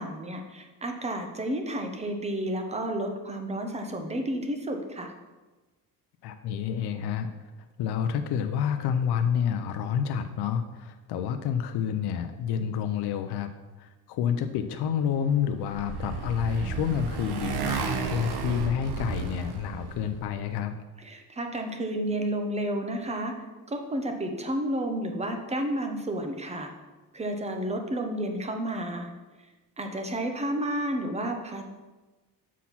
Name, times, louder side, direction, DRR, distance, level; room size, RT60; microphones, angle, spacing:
voice 1, 0.0-5.1 21.0-23.3 23.7-26.7 27.1-29.1 29.8-31.6, right 1 dB, 15° right, 4 dB, 0.8 m, -31 dB
voice 2, 6.2-7.3 7.8-13.5 13.8-20.7, left 8 dB, 75° left, 7 dB, 0.6 m, -29 dB
Motorcycle, 15.2-20.2, right 5 dB, 75° right, 1.0 m, -33 dB
7.1 x 4.2 x 5.8 m, 1.2 s
cardioid pair, 150°, 39 cm